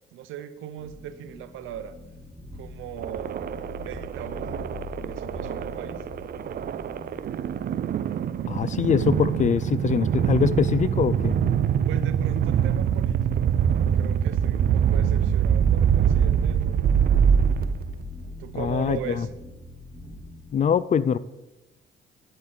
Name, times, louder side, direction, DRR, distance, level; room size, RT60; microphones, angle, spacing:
voice 1, 0.1-2.0 2.5-3.5 3.8-6.0 11.9-13.5 13.9-16.9 18.4-19.3, right 10 dB, 90° right, 12 dB, 0.7 m, -38 dB
sound 1, 0.8-20.6, left 2 dB, 5° left, 3.1 m, -42 dB
sound 2, 3.0-18.1, right 8 dB, 50° right, 0.4 m, -24 dB
voice 2, 8.5-11.3 18.6-19.3 20.5-21.2, left 7 dB, 40° left, 17 dB, 0.4 m, -23 dB
8.9 x 8.0 x 3.9 m, 0.99 s
cardioid pair, 90°, 20 cm